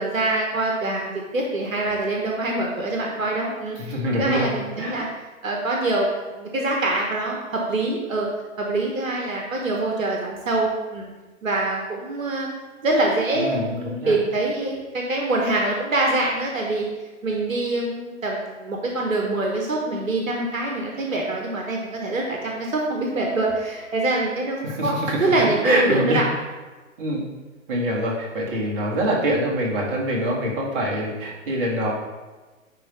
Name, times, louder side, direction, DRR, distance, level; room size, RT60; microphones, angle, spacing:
voice 1, 0.0-3.8 4.2-5.1 5.4-8.3 8.6-11.0 11.4-12.5 12.8-16.8 17.2-26.2, right 2 dB, 75° right, -1 dB, 1.3 m, -24 dB
voice 2, 3.8-5.1 13.3-14.2 24.6-26.2 27.0-27.3 27.7-31.9, equal, 40° right, -3 dB, 1.9 m, -25 dB
9.9 x 3.4 x 4.3 m, 1.3 s
figure-of-eight pair, 130°, 41 cm